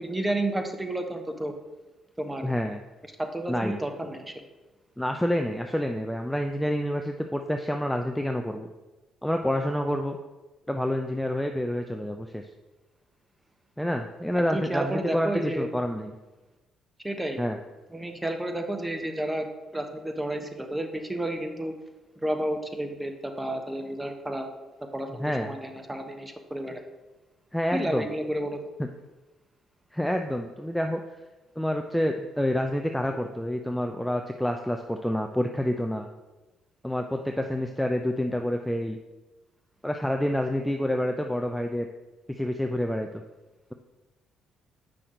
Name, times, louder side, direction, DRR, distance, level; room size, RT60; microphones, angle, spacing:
voice 1, 0.0-1.5 2.2-2.4 3.2-4.4 14.5-15.7 17.0-17.4 17.9-19.5 19.7-21.7 22.2-24.5 24.9-26.8 27.7-28.6, right 1 dB, 15° right, 4 dB, 1.1 m, -31 dB
voice 2, 2.4-2.8 3.5-3.8 5.0-8.7 9.2-10.2 10.7-12.4 13.8-16.1 17.4-17.6 25.2-25.5 27.5-28.1 28.8-28.9 29.9-31.0 31.6-36.1 36.8-39.0 39.8-41.9 42.4-43.2, equal, 5° left, 4 dB, 0.6 m, -28 dB
7.7 x 5.8 x 3.9 m, 1.1 s
hypercardioid pair, 50°, 0 cm